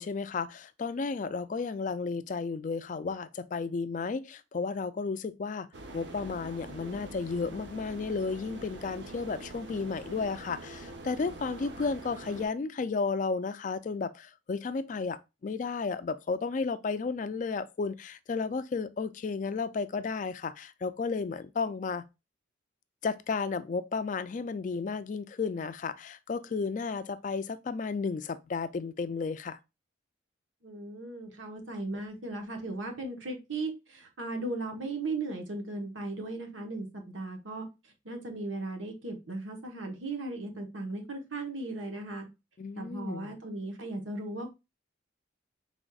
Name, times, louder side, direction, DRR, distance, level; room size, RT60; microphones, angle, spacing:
voice 1, 0.0-5.7 5.9-22.0 23.0-29.6 42.6-43.3, left 4 dB, 40° left, 0.3 m, -33 dB
sound 1, 5.7-12.5, right 2 dB, 65° right, 0.7 m, -45 dB
voice 2, 30.6-37.7 38.0-42.3 42.8-44.6, right 2 dB, 90° right, 1.1 m, -37 dB
5.1 x 3.5 x 2.3 m
head